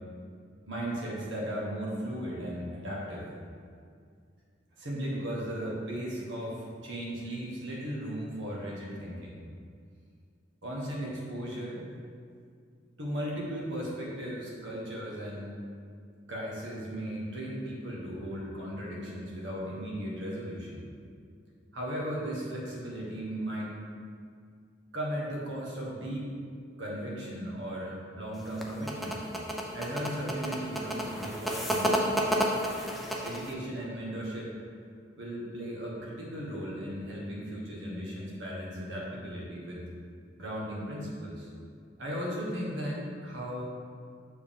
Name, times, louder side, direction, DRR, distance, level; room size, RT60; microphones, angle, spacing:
voice 1, 0.7-3.3 4.8-9.4 10.6-11.8 13.0-15.6 16.3-20.8 21.7-23.7 24.9-26.3 26.8-29.2 29.7-32.1 33.2-34.5 35.2-39.8 40.4-41.5 42.0-43.7, equal, 75° right, -4 dB, 1.5 m, -36 dB
sound 1, 28.4-33.5, equal, ahead, 0.5 m, -30 dB
7.0 x 4.7 x 3.7 m, 2.2 s
head